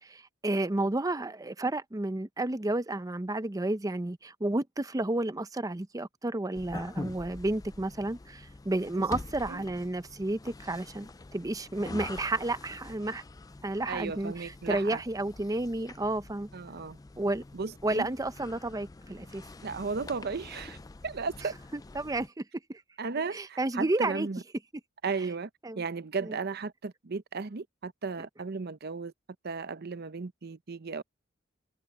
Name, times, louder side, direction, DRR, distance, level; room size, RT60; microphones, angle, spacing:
voice 1, 0.0-13.2 13.6-16.5 17.2-17.4 17.8-19.4 21.7-22.4 22.7-22.8 23.3-24.3 25.6-25.8 26.2-26.4, right 2 dB, 20° right, 0.7 m, -31 dB
sound 1, 6.5-22.3, left 2 dB, 20° left, 0.4 m, -46 dB
voice 2, 13.9-15.0 16.5-17.0 17.5-18.1 19.6-20.8 21.0-21.5 23.0-24.4 25.0-25.5 25.8-29.1 29.4-31.0, right 4 dB, 55° right, 0.7 m, -35 dB
head